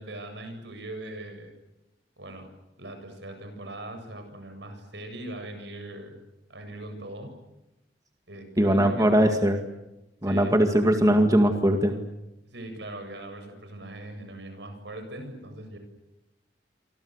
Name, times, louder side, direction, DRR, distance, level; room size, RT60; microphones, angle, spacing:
voice 1, 0.0-1.5 2.2-2.5 2.8-6.2 6.5-7.3 8.3-9.1 10.2-10.5 12.5-15.8, right 1 dB, 70° right, 6 dB, 7.9 m, -40 dB
voice 2, 8.6-9.6 10.2-12.0, right 1 dB, 20° right, 5 dB, 2.1 m, -21 dB
28.0 x 25.5 x 8.2 m, 0.94 s
head